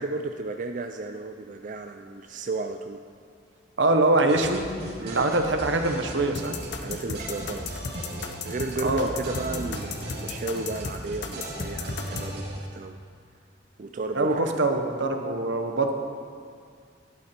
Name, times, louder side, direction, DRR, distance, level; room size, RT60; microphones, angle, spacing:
voice 1, 0.0-3.0 5.0-5.3 6.8-7.7 8.4-13.0 13.8-14.6, right 3 dB, 45° right, 6 dB, 0.4 m, -33 dB
voice 2, 3.8-4.7 5.1-6.6 8.8-9.1 14.1-16.0, right 2 dB, 75° right, 5 dB, 1.1 m, -23 dB
sound 1, 4.3-12.6, right 1 dB, 60° right, 2.5 m, -37 dB
sound 2, 6.3-12.3, left 5 dB, 70° left, 0.9 m, -35 dB
12.0 x 11.0 x 4.4 m, 2.2 s
head